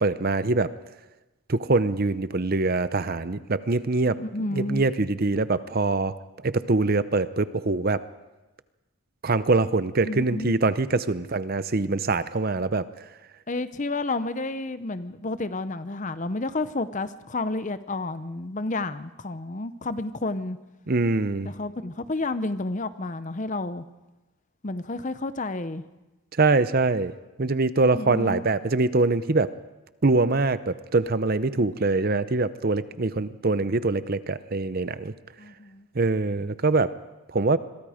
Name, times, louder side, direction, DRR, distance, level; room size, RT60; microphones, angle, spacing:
voice 1, 0.0-0.7 1.5-4.2 4.5-6.2 6.4-8.0 9.2-12.9 20.9-21.5 26.4-27.1 27.4-29.5 30.0-35.1 35.9-36.9 37.3-37.6, right 3 dB, 40° right, 14 dB, 0.7 m, -23 dB
voice 2, 4.1-4.9 10.0-10.6 13.5-20.6 21.5-23.8 24.6-25.8 27.9-28.4 35.4-35.9, left 2 dB, 35° left, 13 dB, 0.7 m, -30 dB
26.5 x 22.0 x 5.0 m, 1.1 s
head